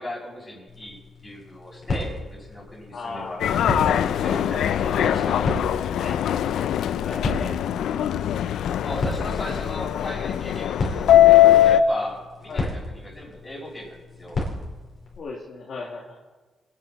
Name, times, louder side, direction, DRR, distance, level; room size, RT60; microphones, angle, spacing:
voice 1, 0.0-6.2 8.8-14.4, left 1 dB, 20° left, -8 dB, 5.9 m, -37 dB
sound 1, 0.7-15.2, left 2 dB, 40° left, 5.4 m, -34 dB
voice 2, 2.9-3.5 7.0-7.6 12.5-12.8 15.2-16.2, left 3 dB, 60° left, -3 dB, 2.5 m, -36 dB
Subway metro underground, 3.4-11.8, left 12 dB, 85° left, 0.5 m, -21 dB
25.0 x 10.0 x 5.3 m, 1.3 s
cardioid pair, 115°, 0 cm